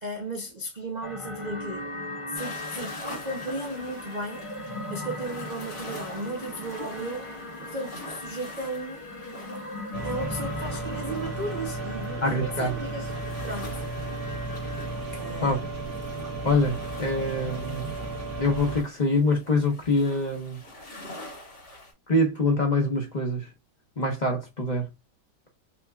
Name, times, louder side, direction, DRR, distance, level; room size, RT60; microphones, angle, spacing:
voice 1, 0.0-1.9 2.3-4.5 4.9-9.1 10.0-13.1 13.4-13.8 15.1-15.6, right 1 dB, 45° right, 0.5 m, -35 dB
sound 1, 1.0-14.9, left 2 dB, 45° left, 0.4 m, -39 dB
sound 2, 2.4-21.9, left 1 dB, 75° left, 2.9 m, -45 dB
sound 3, 9.9-18.8, right 2 dB, 75° right, 1.9 m, -34 dB
voice 2, 12.2-12.8 15.4-15.6 16.4-18.0 18.4-20.6 22.1-23.5 24.0-24.9, left 2 dB, 30° left, 1.1 m, -25 dB
5.8 x 2.7 x 2.4 m
omnidirectional pair, 1.8 m